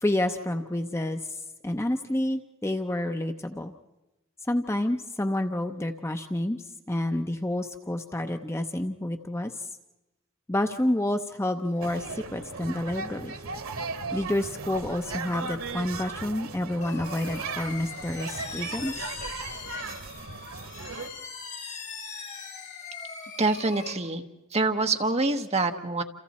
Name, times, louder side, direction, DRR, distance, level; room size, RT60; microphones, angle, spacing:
voice 1, 0.0-3.7 4.4-6.6 6.9-9.5 10.5-13.3 14.1-18.9, left 1 dB, 10° left, 6 dB, 0.7 m, -29 dB
sound 1, 11.8-21.1, right 4 dB, 90° right, 1.4 m, -37 dB
sound 2, 16.8-23.9, left 5 dB, 35° left, 2.9 m, -41 dB
voice 2, 23.4-24.3 24.5-26.0, right 3 dB, 30° right, 5 dB, 1.2 m, -25 dB
28.5 x 28.0 x 4.2 m, 0.99 s
head